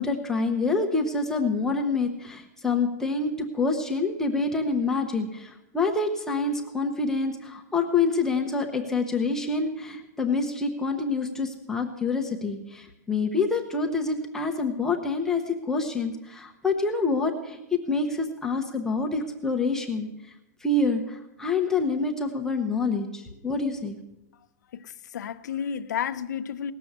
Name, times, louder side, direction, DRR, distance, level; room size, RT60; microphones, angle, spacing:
voice 1, 0.0-20.1 20.6-24.0, left 3 dB, 5° left, 0.9 m, -27 dB
voice 2, 24.7-26.7, left 8 dB, 80° left, 0.9 m, -32 dB
18.5 x 7.1 x 7.9 m
supercardioid pair, 165°, 9 cm